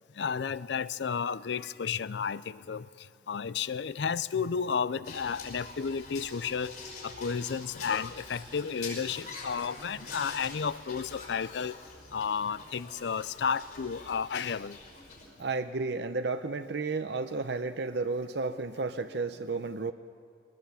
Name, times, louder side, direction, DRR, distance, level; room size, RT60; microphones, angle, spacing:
voice 1, 0.2-2.9 3.3-6.8 7.0-11.8 12.1-14.8, left 6 dB, 80° left, 0.5 m, -32 dB
sound 1, 5.1-15.3, left 3 dB, 45° left, 5.1 m, -45 dB
voice 2, 15.4-19.9, right 3 dB, 70° right, 0.7 m, -32 dB
23.0 x 19.0 x 7.1 m
head